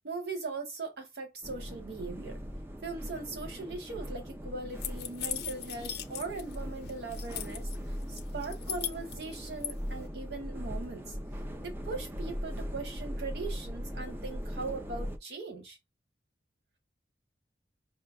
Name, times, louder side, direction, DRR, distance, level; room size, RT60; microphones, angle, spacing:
voice 1, 0.0-2.4 2.8-15.8, right 3 dB, 60° right, 0.6 m, -40 dB
sound 1, 1.4-15.2, equal, 10° right, 0.4 m, -39 dB
sound 2, 4.8-6.6 6.8-7.8 8.2-9.7, left 11 dB, 60° left, 0.6 m, -38 dB
5.4 x 2.3 x 2.2 m
head